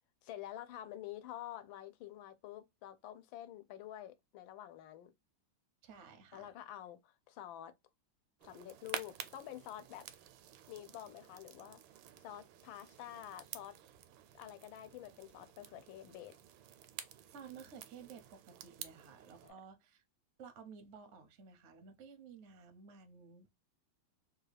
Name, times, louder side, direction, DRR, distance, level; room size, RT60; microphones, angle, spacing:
voice 1, 0.2-5.1 6.3-7.7 8.4-10.1 10.7-11.8 12.2-13.8 14.3-16.4 19.4-19.5, left 12 dB, 85° left, 1.3 m, -48 dB
voice 2, 5.8-6.5 17.3-20.0 20.4-23.5, right 6 dB, 65° right, 0.6 m, -54 dB
sound 1, 8.4-19.5, right 10 dB, 85° right, 1.3 m, -51 dB
3.3 x 2.3 x 3.2 m
omnidirectional pair, 2.1 m